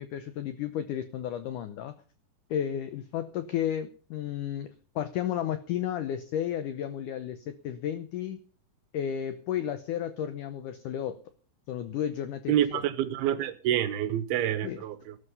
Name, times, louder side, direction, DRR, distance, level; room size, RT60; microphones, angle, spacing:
voice 1, 0.0-1.9 2.5-8.4 8.9-11.2 11.7-12.5 14.6-14.8, left 10 dB, 90° left, 1.8 m, -33 dB
voice 2, 12.5-15.1, right 11 dB, 75° right, 2.6 m, -27 dB
12.5 x 12.5 x 5.5 m
omnidirectional pair, 4.8 m